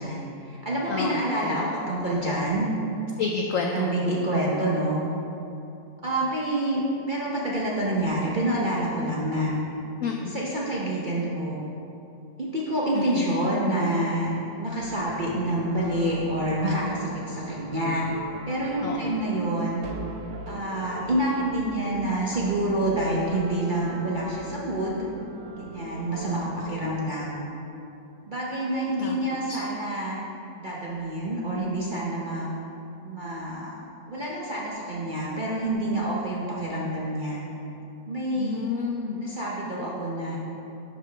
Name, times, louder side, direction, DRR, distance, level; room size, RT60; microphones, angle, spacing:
voice 1, 0.0-2.7 3.6-5.0 6.0-9.5 10.3-11.7 12.4-14.3 14.6-18.1 18.5-19.8 20.5-25.1 25.6-27.4 28.3-30.2 30.6-32.5 33.0-33.8 34.1-37.4 38.1-38.7 39.2-40.4, right 1 dB, 45° right, -5 dB, 0.6 m, -27 dB
voice 2, 0.9-1.7 3.2-4.1 10.0-10.4 12.9-13.3 18.8-19.2 29.0-29.6 38.4-39.2, left 5 dB, 85° left, 2 dB, 0.7 m, -30 dB
sound 1, 14.8-27.0, right 3 dB, 90° right, 1.4 m, -41 dB
11.5 x 5.1 x 3.3 m, 2.8 s
omnidirectional pair, 1.9 m